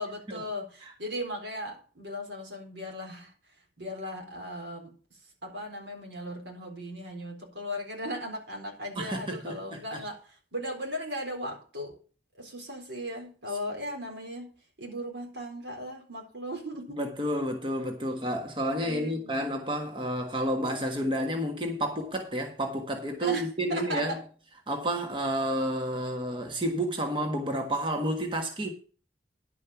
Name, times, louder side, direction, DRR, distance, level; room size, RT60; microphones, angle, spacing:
voice 1, 0.0-3.3 3.8-4.9 5.4-11.9 12.4-14.5 14.8-17.0 18.7-19.4 23.2-24.2, equal, 90° right, 4.2 m, -37 dB
voice 2, 8.9-10.0 16.9-24.2 24.7-28.7, right 1 dB, 30° right, 1.4 m, -30 dB
11.0 x 5.3 x 6.9 m
head